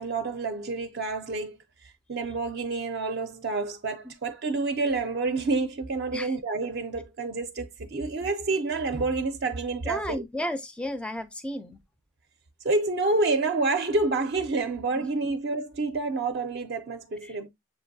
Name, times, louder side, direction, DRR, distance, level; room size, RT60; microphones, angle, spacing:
voice 1, 0.0-10.2 12.6-17.5, right 3 dB, 50° right, 0.5 m, -28 dB
voice 2, 9.9-11.8 15.0-15.1 17.2-17.3, left 1 dB, 5° left, 0.4 m, -33 dB
7.0 x 2.6 x 2.6 m
head